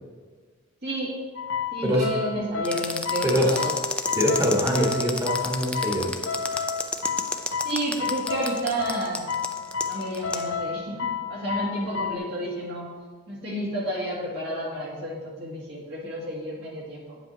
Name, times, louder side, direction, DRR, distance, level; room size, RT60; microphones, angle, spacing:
voice 1, 0.8-1.2 1.7-3.7 7.6-9.3 9.8-12.9 13.3-17.2, equal, 60° right, -4 dB, 2.2 m, -31 dB
sound 1, 1.4-12.2, left 6 dB, 75° left, 0.5 m, -31 dB
sound 2, 2.6-10.4, left 2 dB, 5° left, 0.4 m, -30 dB
voice 2, 4.1-6.1, equal, 20° right, -2 dB, 1.4 m, -24 dB
9.3 x 7.7 x 2.8 m, 1.5 s
head